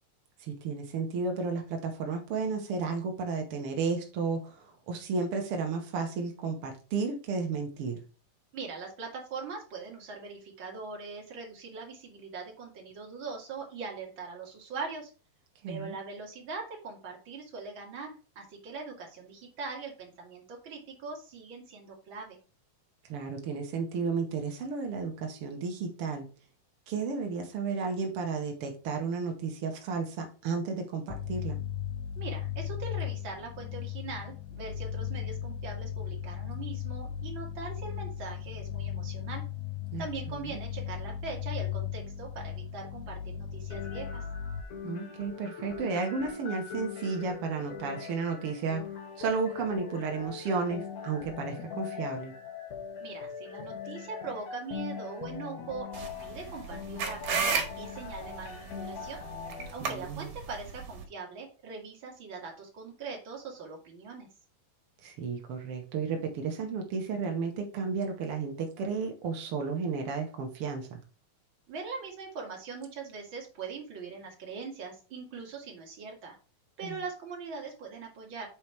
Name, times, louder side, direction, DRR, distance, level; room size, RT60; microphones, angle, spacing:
voice 1, 0.4-8.0 15.6-16.0 23.1-26.2 26.9-31.6 39.9-40.6 44.8-48.9 49.2-52.3 59.8-60.3 65.0-71.0 76.8-77.0, right 5 dB, 85° right, 3 dB, 1.2 m, -33 dB
voice 2, 8.5-15.1 15.7-22.4 32.2-39.4 40.0-44.2 53.0-59.2 59.7-64.3 71.7-76.4 76.8-78.5, right 4 dB, 40° right, 0 dB, 2.2 m, -41 dB
sound 1, 31.1-44.6, left 10 dB, 85° left, 1.8 m, -37 dB
sound 2, 43.7-59.7, left 7 dB, 60° left, 2.6 m, -41 dB
sound 3, 55.9-61.0, right 5 dB, 60° right, 2.8 m, -34 dB
7.1 x 4.8 x 4.5 m, 0.35 s
omnidirectional pair, 4.3 m